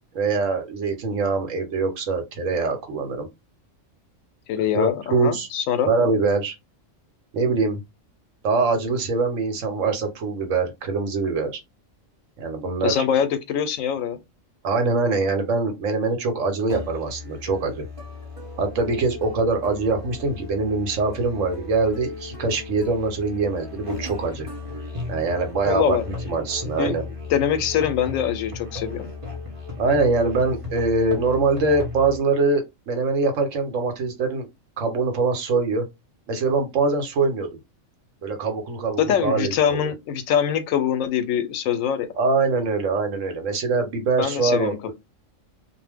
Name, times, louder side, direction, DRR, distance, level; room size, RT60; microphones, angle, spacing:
voice 1, 0.1-3.3 4.7-5.5 5.9-6.5 7.3-7.8 8.4-11.6 12.4-13.0 14.6-17.8 18.6-24.5 25.1-27.0 29.8-34.5 34.8-35.8 36.3-37.5 38.2-39.9 42.2-44.9, right 3 dB, 75° right, 1.1 m, -23 dB
voice 2, 4.5-5.9 12.8-14.2 25.6-26.0 26.8-26.9 27.3-29.1 39.0-42.1 44.2-44.9, left 8 dB, 85° left, 1.0 m, -23 dB
Musical instrument, 16.7-32.2, left 3 dB, 30° right, 0.7 m, -36 dB
2.4 x 2.1 x 3.3 m
omnidirectional pair, 1.4 m